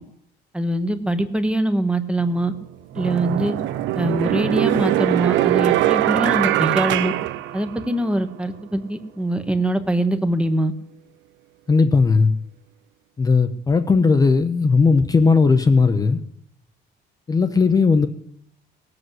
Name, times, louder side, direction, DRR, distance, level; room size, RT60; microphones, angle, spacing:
voice 1, 0.5-2.5 2.9-3.5 3.9-7.1 7.5-10.7, right 1 dB, 5° right, 0.9 m, -23 dB
sound 1, 2.2-2.3 2.9-8.1, right 14 dB, 80° right, 0.8 m, -21 dB
voice 2, 11.7-12.3 13.2-16.2 17.3-18.1, left 4 dB, 20° left, 0.7 m, -17 dB
18.5 x 7.8 x 7.9 m
cardioid pair, 160°, 19 cm